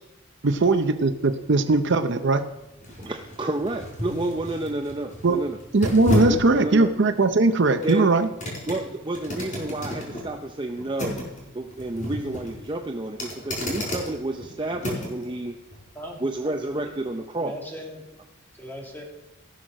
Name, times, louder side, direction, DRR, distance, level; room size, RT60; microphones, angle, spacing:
voice 1, 0.4-2.4 5.2-5.4 5.7-8.3, right 3 dB, 60° right, 9 dB, 0.6 m, -20 dB
sound 1, 1.0-15.3 15.7-15.8, left 1 dB, 40° left, 4.5 m, -33 dB
voice 2, 3.0-5.6 6.3-6.9 7.8-8.0 8.7-11.2 11.5-15.5 16.2-17.5, right 1 dB, 25° right, 3 dB, 0.6 m, -30 dB
voice 3, 17.3-18.1 18.5-19.0, equal, 10° left, -1 dB, 2.4 m, -39 dB
17.0 x 6.4 x 6.2 m, 0.98 s
head